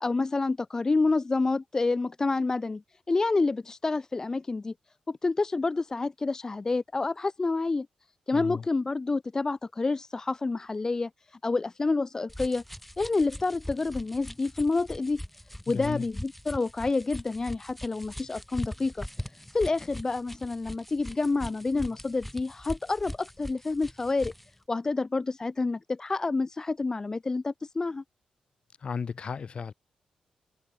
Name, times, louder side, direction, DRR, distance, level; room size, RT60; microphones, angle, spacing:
voice 1, 0.0-2.8 3.1-4.7 5.1-7.9 8.3-12.6 13.0-15.2 15.7-24.3 24.7-28.0, left 3 dB, 25° left, 0.4 m, -28 dB
voice 2, 8.3-8.7 15.7-16.1 28.8-29.7, left 6 dB, 50° left, 3.3 m, -34 dB
sound 1, 12.3-24.5, equal, 5° left, 1.6 m, -41 dB
cardioid pair, 85°, 2 cm